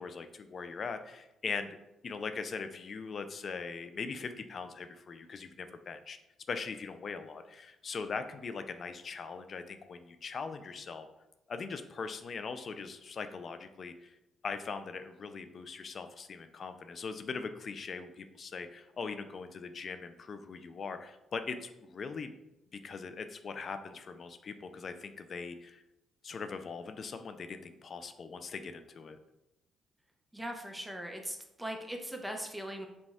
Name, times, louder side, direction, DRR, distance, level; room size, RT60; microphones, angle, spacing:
voice 1, 0.0-1.8 2.0-6.2 6.5-11.1 11.5-14.1 14.4-22.3 22.7-25.8 26.2-29.2, left 5 dB, 50° left, 9 dB, 0.4 m, -41 dB
voice 2, 30.3-32.9, equal, 5° right, 3 dB, 0.7 m, -40 dB
5.0 x 2.3 x 3.4 m, 0.93 s
cardioid pair, 90°, 0 cm